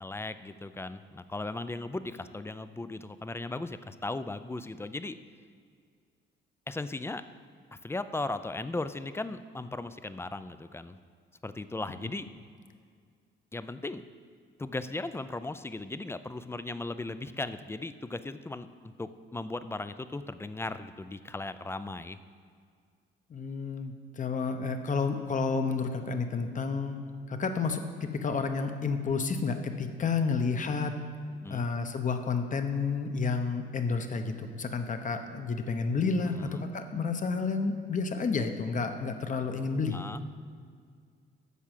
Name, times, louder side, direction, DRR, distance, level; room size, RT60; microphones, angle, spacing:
voice 1, 0.0-5.2 6.7-7.2 7.8-11.0 11.4-12.3 13.5-14.0 14.6-18.7 19.0-22.2 31.4-31.7 36.4-36.7 39.9-40.2, left 2 dB, 10° left, 12 dB, 0.4 m, -37 dB
voice 2, 23.3-27.0 27.3-30.9 31.5-40.0, left 4 dB, 40° left, 7 dB, 1.0 m, -30 dB
8.4 x 6.0 x 7.5 m, 2.1 s
cardioid pair, 90°, 20 cm